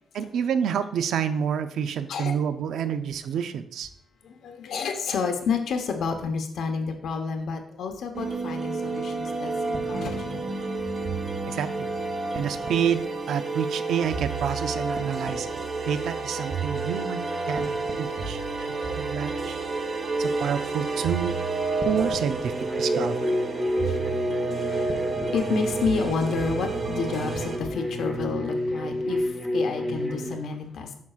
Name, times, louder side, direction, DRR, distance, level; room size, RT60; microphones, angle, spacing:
voice 1, 0.1-3.9 11.5-11.9 12.3-15.5 15.9-17.7 18.0-18.4 18.9-19.6 20.2-21.4 21.8-22.5 22.8-23.4, right 8 dB, 80° right, 10 dB, 0.5 m, -28 dB
voice 2, 4.2-10.5 23.1-23.3 23.5-30.9, left 5 dB, 70° left, 5 dB, 1.1 m, -30 dB
sound 1, 8.1-27.6, right 3 dB, 40° right, 0.9 m, -30 dB
sound 2, 22.4-30.4, left 1 dB, 10° right, 1.2 m, -30 dB
9.4 x 6.2 x 2.4 m, 0.68 s
wide cardioid pair, 155°, 0 cm